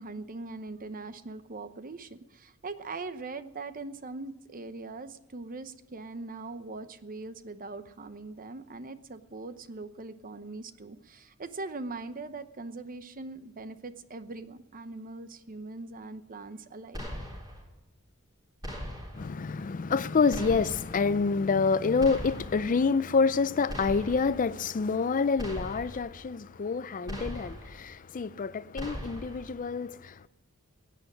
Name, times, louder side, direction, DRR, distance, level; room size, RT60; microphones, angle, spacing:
voice 1, 0.0-17.1, right 3 dB, 40° right, 0.9 m, -41 dB
sound 1, 16.9-17.6 18.6-19.3 20.3-21.0 22.0-22.7 23.7-24.4 25.4-26.1 27.1-27.8 28.8-29.5, equal, 20° right, 3.6 m, -39 dB
voice 2, 19.1-30.3, left 4 dB, 40° left, 0.4 m, -27 dB
16.0 x 9.2 x 9.8 m
head